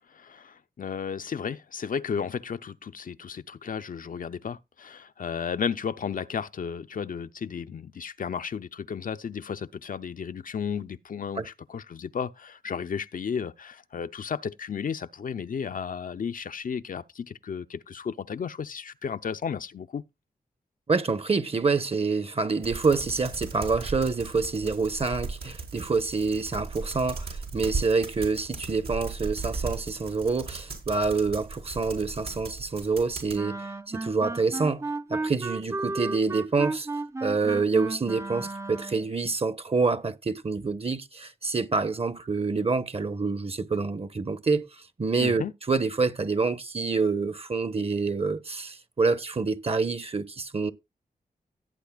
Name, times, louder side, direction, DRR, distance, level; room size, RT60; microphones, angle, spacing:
voice 1, 0.1-20.1 45.2-45.5, left 6 dB, 60° left, 0.6 m, -33 dB
voice 2, 20.9-36.9 37.2-44.7 45.0-50.7, right 4 dB, 40° right, 1.1 m, -27 dB
sound 1, 22.6-33.4, right 4 dB, 80° right, 4.6 m, -37 dB
Wind instrument woodwind instrument, 33.3-39.1, right 2 dB, 20° right, 0.5 m, -34 dB
17.0 x 8.3 x 2.4 m
cardioid pair, 45°, 16 cm